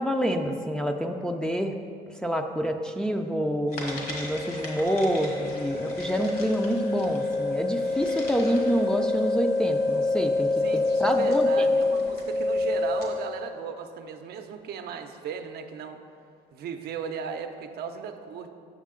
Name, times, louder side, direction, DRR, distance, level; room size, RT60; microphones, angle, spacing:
voice 1, 0.0-1.7 2.2-11.7, equal, 5° left, 2 dB, 0.4 m, -27 dB
sound 1, 3.7-13.2, left 2 dB, 65° left, 1.7 m, -27 dB
voice 2, 10.6-16.0 16.5-18.5, right 7 dB, 70° right, 6 dB, 0.6 m, -36 dB
8.3 x 6.6 x 3.7 m, 2.3 s
cardioid pair, 110°, 17 cm